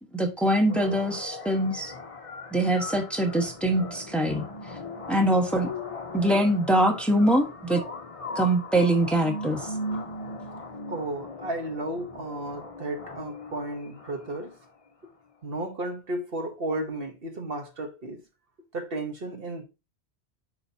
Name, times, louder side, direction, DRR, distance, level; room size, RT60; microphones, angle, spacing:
voice 1, 0.1-1.9 2.5-4.4 5.1-5.7 6.1-7.8 8.4-9.7, right 1 dB, ahead, 1.2 m, -23 dB
sound 1, 0.7-14.7, left 2 dB, 35° left, 0.9 m, -38 dB
voice 2, 10.9-14.6 15.4-18.2 18.7-19.6, right 2 dB, 55° right, 1.3 m, -33 dB
9.7 x 5.0 x 2.8 m
omnidirectional pair, 1.2 m